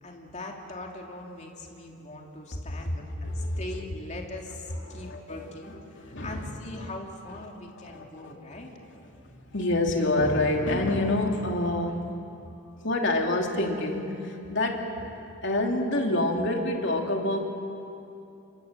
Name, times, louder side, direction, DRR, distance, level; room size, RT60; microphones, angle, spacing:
voice 1, 0.0-8.7, left 2 dB, 35° left, 0 dB, 2.9 m, -41 dB
voice 2, 3.2-3.7 4.8-6.5 6.8-6.9 7.8-8.7 9.1-12.4 12.8-15.1 15.4-17.4, left 1 dB, 60° left, 1 dB, 2.9 m, -28 dB
28.0 x 25.5 x 7.5 m, 2.7 s
head